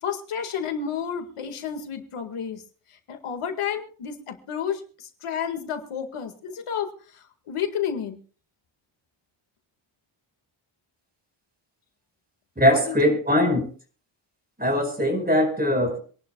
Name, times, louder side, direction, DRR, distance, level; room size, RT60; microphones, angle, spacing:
voice 1, 0.0-2.6 2.9-8.2 12.7-13.2, left 8 dB, 85° left, 6 dB, 2.0 m, -31 dB
voice 2, 12.6-13.7 14.6-16.0, equal, 20° right, 4 dB, 4.9 m, -21 dB
26.0 x 11.5 x 2.3 m, 0.40 s
wide cardioid pair, 105°, 49 cm